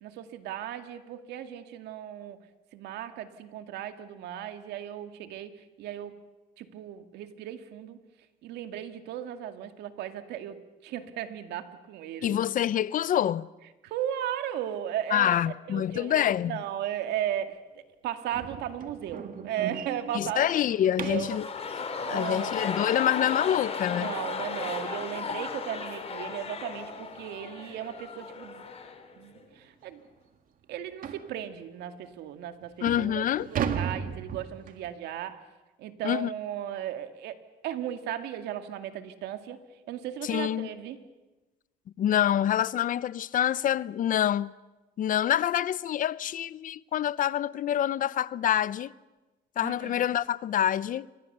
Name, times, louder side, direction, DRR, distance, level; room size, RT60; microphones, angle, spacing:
voice 1, 0.0-2.4 2.7-6.2 6.6-8.0 8.4-10.6 10.8-12.4 13.8-17.6 18.0-20.5 21.0-21.4 21.8-22.7 23.9-28.7 29.2-30.0 30.7-35.4 35.8-37.4 37.6-39.6 39.9-41.0 49.6-50.1, right 10 dB, 80° right, 2.2 m, -36 dB
voice 2, 12.2-13.5 15.1-16.5 20.1-21.4 22.1-24.1 32.8-33.5 36.0-36.3 40.2-40.7 42.0-44.5 45.0-48.9 49.6-51.1, left 11 dB, 55° left, 0.7 m, -26 dB
sound 1, 18.3-21.4 24.2-24.3 24.8-25.0 25.3-25.4 25.9-26.0 27.1-27.3 27.7-27.8 28.5-28.6 28.9-29.0 29.5-29.6 31.0-31.3 32.1-32.2 32.6-34.9, right 7 dB, 55° right, 2.0 m, -36 dB
sound 2, 21.0-29.1 29.4-29.5, left 5 dB, 35° left, 3.6 m, -35 dB
28.5 x 24.0 x 6.8 m
cardioid pair, 110°, 17 cm